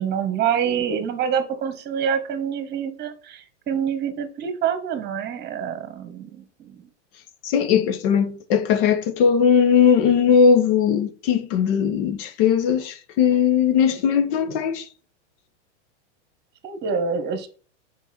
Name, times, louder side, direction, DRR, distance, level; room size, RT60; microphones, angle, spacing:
voice 1, 0.0-6.8 16.6-17.5, right 7 dB, 30° right, 1.6 m, -26 dB
voice 2, 7.4-14.9, left 7 dB, 55° left, 1.4 m, -19 dB
7.0 x 4.7 x 4.4 m
hypercardioid pair, 120°, 35 cm